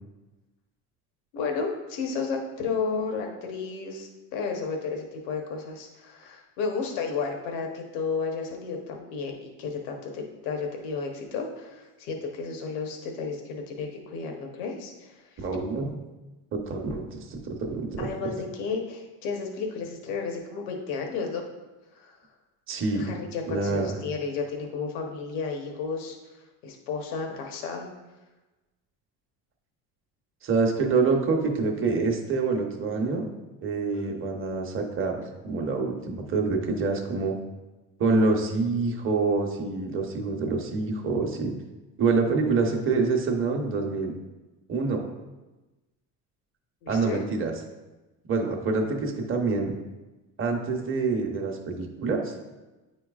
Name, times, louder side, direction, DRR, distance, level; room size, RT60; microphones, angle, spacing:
voice 1, 1.3-15.5 18.0-21.4 21.9-22.2 22.9-26.2 26.6-27.9 33.9-34.2 46.8-47.2, left 5 dB, 85° left, 2 dB, 1.1 m, -32 dB
voice 2, 15.4-16.0 16.5-18.3 22.7-23.1 23.5-23.9 30.4-33.3 33.6-37.4 38.0-41.5 42.0-44.1 44.7-45.1 46.9-47.5 48.2-49.7 50.4-52.3, right 4 dB, 30° right, 2 dB, 0.9 m, -26 dB
9.2 x 4.5 x 2.4 m, 1.1 s
cardioid pair, 125°, 39 cm